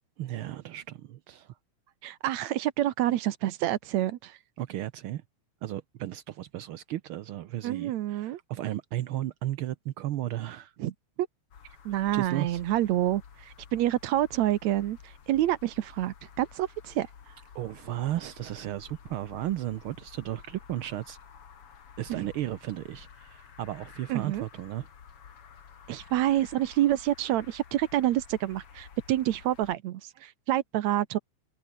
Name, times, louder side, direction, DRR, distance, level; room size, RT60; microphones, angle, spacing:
voice 1, 0.2-1.6 4.6-5.2 5.6-10.7 12.1-12.6 17.5-21.2 22.0-24.9, right 13 dB, 90° right, 1.1 m, -34 dB
voice 2, 2.0-4.4 7.6-8.4 10.8-10.9 11.9-17.1 22.1-22.3 24.1-24.4 25.9-31.2, right 13 dB, 75° right, 2.2 m, -28 dB
sound 1, 11.5-29.8, left 7 dB, 50° left, 3.0 m, -52 dB
omnidirectional pair, 3.4 m